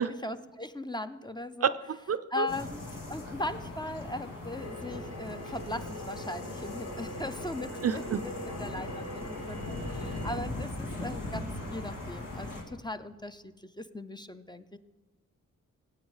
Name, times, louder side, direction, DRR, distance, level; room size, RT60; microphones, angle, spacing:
voice 1, 0.0-1.7 2.3-14.8, left 2 dB, 15° left, 10 dB, 0.5 m, -39 dB
voice 2, 1.6-2.5 7.8-8.2, right 7 dB, 50° right, 13 dB, 0.5 m, -29 dB
sound 1, 2.5-12.6, left 2 dB, 85° left, 2.1 m, -40 dB
sound 2, 4.5-10.4, left 1 dB, 50° left, 1.2 m, -42 dB
17.0 x 8.2 x 4.8 m, 1.3 s
cardioid pair, 75°, 32 cm